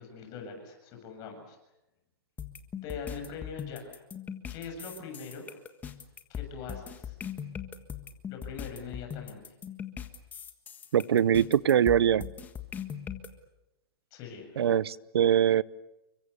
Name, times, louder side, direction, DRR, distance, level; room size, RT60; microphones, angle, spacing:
voice 1, 0.0-1.6 2.8-3.9 4.5-5.5 6.3-7.2 8.3-9.5 14.1-14.6, left 5 dB, 30° left, 4 dB, 7.3 m, -42 dB
sound 1, 2.4-13.3, left 8 dB, 15° left, 1.6 m, -40 dB
voice 2, 10.9-12.3 14.6-15.6, right 9 dB, 75° right, 21 dB, 0.9 m, -23 dB
30.0 x 24.5 x 7.0 m, 0.97 s
hypercardioid pair, 155°, 13 cm